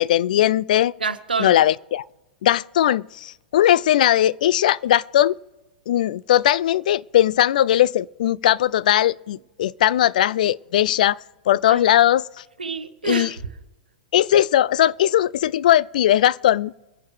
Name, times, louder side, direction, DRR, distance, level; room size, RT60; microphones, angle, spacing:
voice 1, 0.0-0.9 1.4-2.0 2.4-5.4 5.9-11.2 11.5-12.2 13.0-13.3 14.1-16.7, left 12 dB, 60° left, 0.4 m, -19 dB
voice 2, 1.0-1.6 11.7-11.9 12.6-13.4, right 5 dB, 85° right, 0.9 m, -27 dB
24.0 x 9.7 x 3.3 m
figure-of-eight pair, 105°, 5 cm